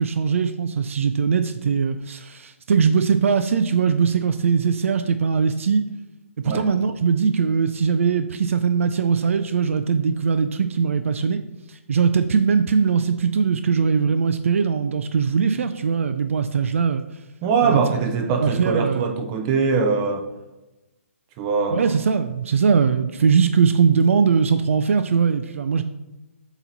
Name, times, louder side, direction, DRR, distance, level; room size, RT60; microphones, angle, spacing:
voice 1, 0.0-5.8 6.4-11.4 11.7-17.0 17.6-17.8 18.4-19.1 21.7-25.8, right 6 dB, 65° right, 10 dB, 0.4 m, -20 dB
voice 2, 17.4-20.2 21.4-21.9, right 5 dB, 25° right, 4 dB, 0.6 m, -22 dB
7.9 x 3.0 x 4.0 m, 1.0 s
hypercardioid pair, 155°, 8 cm